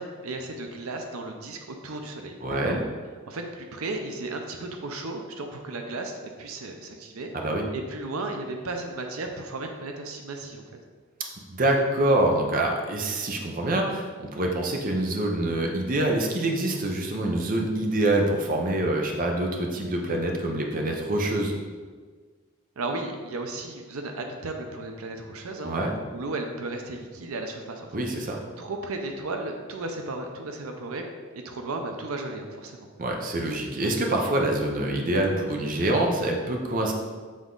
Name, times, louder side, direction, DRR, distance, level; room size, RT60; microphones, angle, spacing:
voice 1, 0.0-2.8 3.3-7.3 7.7-10.7 22.8-25.7 26.1-27.9 28.6-31.0 31.3-32.9, right 2 dB, 85° right, 4 dB, 0.6 m, -34 dB
voice 2, 2.4-2.8 7.3-7.6 11.5-21.5 25.6-25.9 27.9-28.4 33.0-36.9, right 1 dB, 40° right, 1 dB, 0.7 m, -25 dB
7.5 x 3.6 x 3.8 m, 1.5 s
head